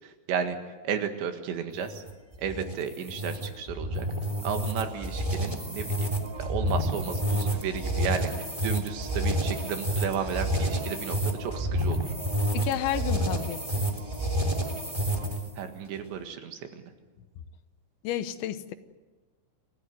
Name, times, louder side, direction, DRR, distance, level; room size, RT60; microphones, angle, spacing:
voice 1, 0.8-2.0 2.4-4.1 4.4-5.9 6.4-8.3 8.6-12.0 15.6-16.6, right 7 dB, 75° right, 6 dB, 3.9 m, -33 dB
sound 1, 1.7-15.6, equal, 15° right, 1.2 m, -29 dB
voice 2, 12.5-13.9 18.0-18.7, left 11 dB, 80° left, 11 dB, 3.3 m, -31 dB
27.5 x 15.0 x 9.4 m, 1.2 s
omnidirectional pair, 5.4 m